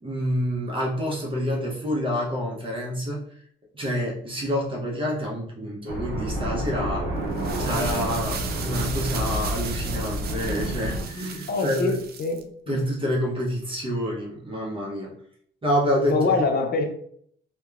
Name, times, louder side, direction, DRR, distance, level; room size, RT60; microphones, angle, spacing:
voice 1, 0.0-3.2 3.7-7.1 7.6-12.0 12.7-15.1 15.6-16.3, equal, 25° right, -3 dB, 0.7 m, -27 dB
sound 1, 5.9-11.1, right 1 dB, 90° right, 0.6 m, -29 dB
sound 2, 7.2-12.4, right 6 dB, 50° right, 0.4 m, -36 dB
voice 2, 11.5-12.4 12.7-12.8 16.1-16.9, left 3 dB, 55° left, 3 dB, 0.6 m, -24 dB
2.8 x 2.2 x 2.4 m, 0.63 s
cardioid pair, 90°, 20 cm